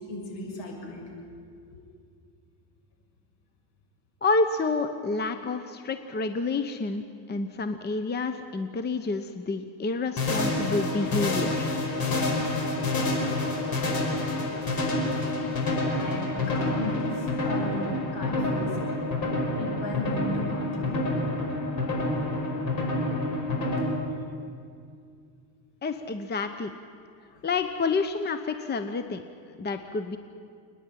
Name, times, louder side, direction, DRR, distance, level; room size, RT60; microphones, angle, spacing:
voice 1, 0.1-1.0 15.9-18.6 18.9-19.0 19.6-21.1 27.3-27.4, left 2 dB, 65° left, 0 dB, 6.6 m, -36 dB
voice 2, 4.2-7.0 7.3-11.7 25.8-26.7 27.4-29.2 29.6-30.2, left 3 dB, 20° left, 9 dB, 0.9 m, -29 dB
sound 1, 10.2-23.8, left 2 dB, 45° left, 5.3 m, -28 dB
29.0 x 10.0 x 9.2 m, 2.3 s
supercardioid pair, 105°, 47 cm